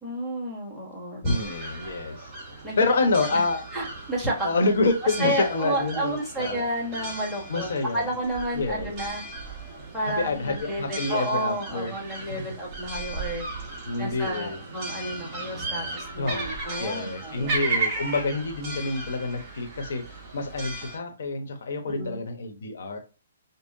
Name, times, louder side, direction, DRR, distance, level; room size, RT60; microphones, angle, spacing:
voice 1, 0.0-1.4 2.6-2.8 3.3-3.4 3.7-4.5 5.2-7.7 7.9-9.2 9.9-13.5 14.0-17.5 21.8-22.2, right 1 dB, 5° left, -3 dB, 1.3 m, -31 dB
voice 2, 1.2-2.3 2.8-3.6 4.4-6.6 7.5-8.1 8.5-8.9 10.2-11.9 13.9-14.6 16.2-20.0 20.3-23.0, left 3 dB, 65° left, 4 dB, 1.0 m, -27 dB
sound 1, 1.2-21.0, right 3 dB, 25° right, 1.2 m, -36 dB
5.4 x 2.1 x 2.7 m, 0.33 s
hypercardioid pair, 160°, 0 cm